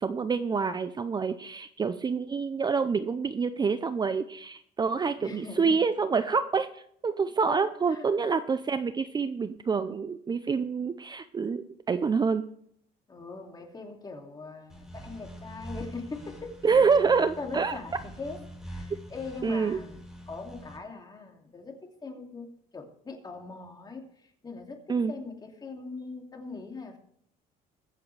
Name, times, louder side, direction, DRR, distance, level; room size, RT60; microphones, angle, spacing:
voice 1, 0.0-12.4 16.6-17.8 19.4-19.8 24.9-25.1, right 5 dB, 25° right, 0.6 m, -27 dB
voice 2, 5.2-5.8 7.5-8.0 13.1-16.6 17.4-20.0 20.3-27.0, left 4 dB, 25° left, 2.5 m, -41 dB
sound 1, 14.7-20.8, equal, ahead, 5.6 m, -44 dB
21.5 x 7.7 x 3.3 m
cardioid pair, 110°, 17 cm